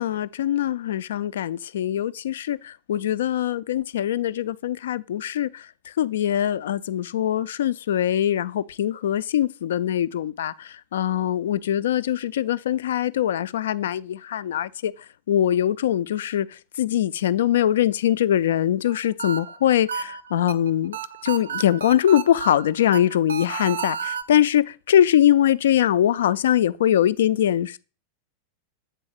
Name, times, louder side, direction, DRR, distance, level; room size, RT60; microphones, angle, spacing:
voice 1, 0.0-14.9 15.3-16.5 16.8-21.0 21.2-27.8, left 11 dB, 60° left, 0.3 m, -22 dB
sound 1, 18.9-24.2, right 7 dB, 70° right, 0.5 m, -32 dB
7.6 x 4.1 x 4.8 m
figure-of-eight pair, 90°, 0 cm